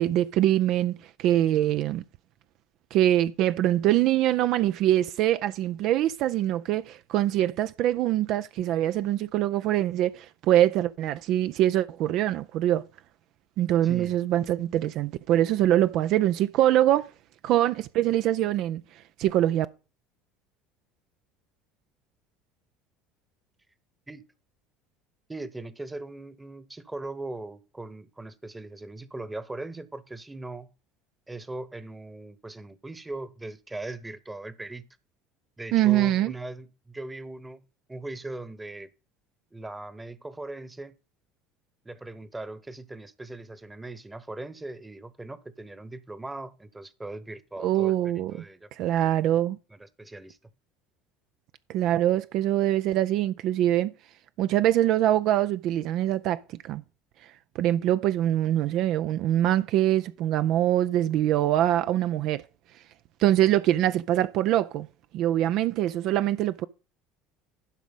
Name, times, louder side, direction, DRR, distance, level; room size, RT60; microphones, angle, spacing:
voice 1, 0.0-2.0 2.9-12.8 13.6-17.1 17.4-18.8 19.2-19.7 35.7-36.3 47.6-48.3 48.8-49.6 51.7-53.9 54.4-56.8 57.6-62.4 63.2-64.9 65.1-66.7, right 13 dB, 60° right, 0.4 m, -24 dB
voice 2, 13.8-14.2 24.1-24.2 25.3-30.7 31.3-34.9 35.6-37.6 37.9-38.9 39.5-40.9 41.8-48.7 49.7-50.4, right 2 dB, 15° right, 1.0 m, -39 dB
11.5 x 5.0 x 5.3 m
hypercardioid pair, 70°, 0 cm